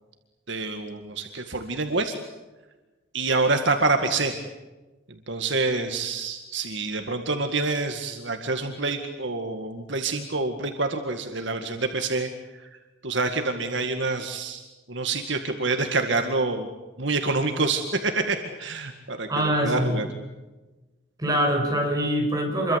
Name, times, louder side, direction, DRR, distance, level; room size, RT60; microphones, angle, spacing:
voice 1, 0.5-2.1 3.1-4.3 5.3-12.3 12.6-12.7 13.0-14.6 14.9-16.7 17.0-20.1, right 3 dB, 60° right, 5 dB, 2.0 m, -27 dB
voice 2, 19.3-20.0 21.2-22.8, right 1 dB, 20° right, 1 dB, 6.7 m, -24 dB
28.0 x 23.5 x 8.2 m, 1.2 s
head